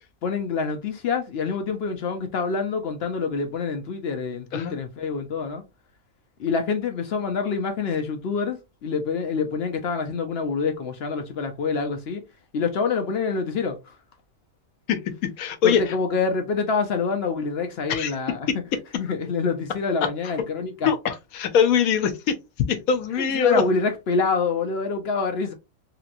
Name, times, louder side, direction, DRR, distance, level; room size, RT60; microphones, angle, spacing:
voice 1, 0.2-5.6 6.4-8.6 8.8-12.2 12.5-13.8 15.6-18.5 18.9-20.9 23.2-25.5, left 4 dB, 65° left, 0.7 m, -26 dB
voice 2, 15.4-15.9 17.9-18.1 18.5-18.6 20.9-22.3 22.7-23.6, left 7 dB, 85° left, 1.1 m, -22 dB
2.9 x 2.9 x 2.5 m
omnidirectional pair, 1.5 m